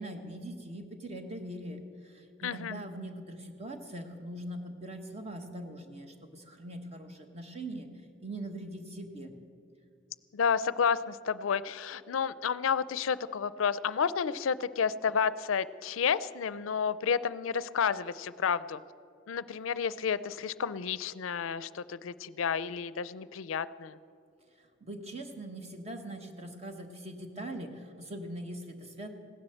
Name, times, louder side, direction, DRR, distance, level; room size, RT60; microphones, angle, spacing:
voice 1, 0.0-7.9 8.2-9.3 24.6-29.1, right 1 dB, 30° right, 6 dB, 1.4 m, -42 dB
voice 2, 2.4-2.8 10.3-18.8 19.3-24.0, left 6 dB, 85° left, 17 dB, 0.4 m, -31 dB
16.5 x 10.5 x 7.8 m, 2.6 s
head